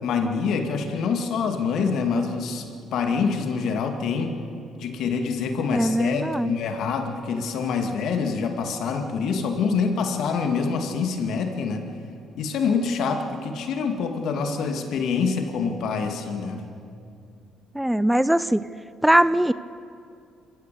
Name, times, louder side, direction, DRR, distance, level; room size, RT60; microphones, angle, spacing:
voice 1, 0.0-4.3 4.8-11.9 12.4-16.6, left 5 dB, 65° left, 5 dB, 2.2 m, -26 dB
voice 2, 5.7-6.5 17.7-18.6 19.0-19.5, right 1 dB, 5° right, 16 dB, 0.6 m, -20 dB
26.0 x 15.0 x 7.0 m, 2.5 s
hypercardioid pair, 60°, 0 cm